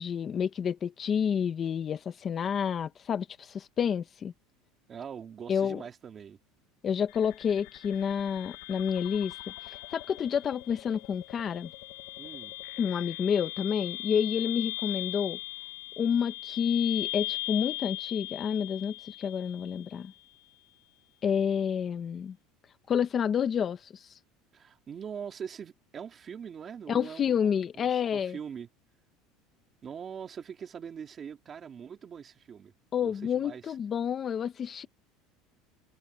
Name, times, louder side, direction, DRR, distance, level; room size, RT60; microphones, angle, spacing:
voice 1, 0.0-4.3 5.5-5.8 6.8-11.7 12.8-15.4 16.0-20.1 21.2-22.4 22.9-24.2 26.9-28.4 32.9-34.9, left 7 dB, 25° left, 0.8 m, -29 dB
voice 2, 4.9-6.4 12.2-12.5 24.5-28.7 29.8-32.7 33.0-33.7, right 7 dB, 25° right, 2.9 m, -42 dB
sound 1, 7.1-20.1, left 20 dB, 65° left, 0.8 m, -39 dB
open air
cardioid pair, 155°, 0 cm